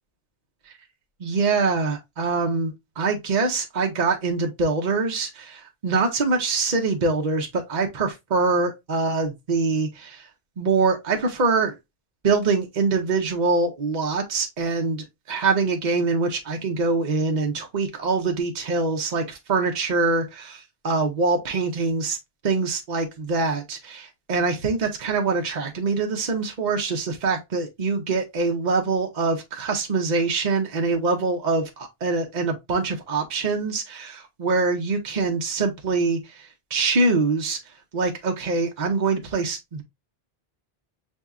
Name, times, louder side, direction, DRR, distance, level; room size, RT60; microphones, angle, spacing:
voice 1, 1.2-10.3 10.6-11.8 12.2-22.2 22.4-37.6 37.9-39.8, right 4 dB, 50° right, 0.9 m, -24 dB
6.7 x 2.7 x 2.3 m
omnidirectional pair, 1.0 m